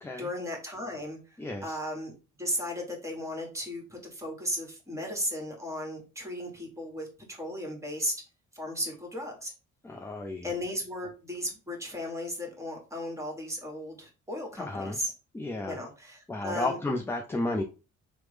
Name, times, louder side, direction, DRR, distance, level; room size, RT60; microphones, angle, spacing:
voice 1, 0.2-2.1 2.4-8.2 8.5-9.5 10.4-15.1 15.7-16.8, equal, 10° right, 1 dB, 1.3 m, -35 dB
voice 2, 1.4-1.8 9.8-10.5 14.6-15.0 15.3-15.8 16.3-17.6, left 2 dB, 10° left, 3 dB, 0.3 m, -32 dB
3.2 x 2.1 x 3.2 m, 0.31 s
cardioid pair, 90°, 30 cm